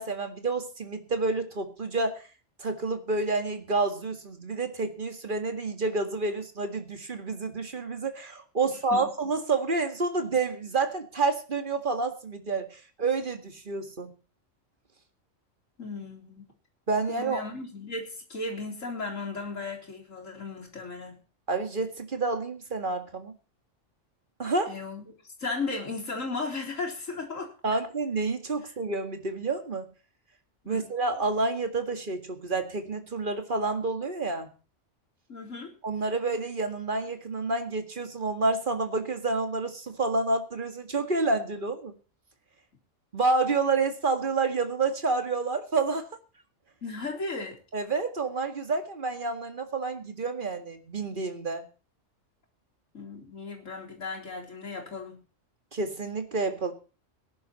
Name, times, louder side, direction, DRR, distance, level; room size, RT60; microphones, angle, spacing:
voice 1, 0.0-2.3 2.6-14.1 16.9-17.4 21.5-23.3 24.4-24.7 27.6-29.9 30.7-34.5 35.8-41.9 43.1-46.1 47.7-51.6 55.7-56.7, right 3 dB, 40° right, 7 dB, 2.1 m, -29 dB
voice 2, 15.8-16.5 17.1-21.2 24.7-25.1 25.4-27.5 30.6-30.8 35.3-35.7 46.8-47.6 52.9-55.2, left 3 dB, 90° left, -1 dB, 4.2 m, -35 dB
18.5 x 10.5 x 4.2 m, 0.36 s
omnidirectional pair, 1.3 m